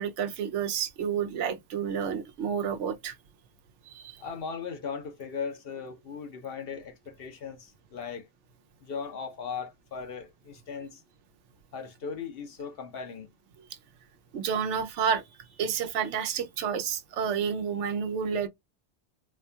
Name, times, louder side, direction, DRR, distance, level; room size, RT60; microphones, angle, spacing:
voice 1, 0.0-3.1 3.9-4.2 14.3-15.2 15.6-18.5, right 7 dB, 85° right, 1.0 m, -30 dB
voice 2, 4.2-8.3 8.8-11.0 11.7-13.3, left 6 dB, 60° left, 0.9 m, -38 dB
4.1 x 2.3 x 2.7 m
omnidirectional pair, 1.2 m